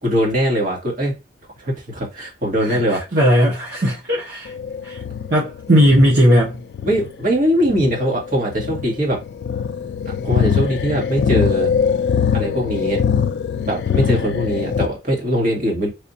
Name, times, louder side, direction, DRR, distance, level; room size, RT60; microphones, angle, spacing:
voice 1, 0.0-1.2 1.6-3.0 6.8-9.2 10.2-11.7 12.3-13.0 13.7-15.9, equal, 45° right, 1.5 m, -21 dB
voice 2, 2.6-4.5 4.8-5.0 5.3-6.6, equal, 60° right, 1.0 m, -17 dB
sound 1, 4.5-14.9, left 7 dB, 65° left, 0.3 m, -22 dB
3.4 x 2.5 x 2.6 m
head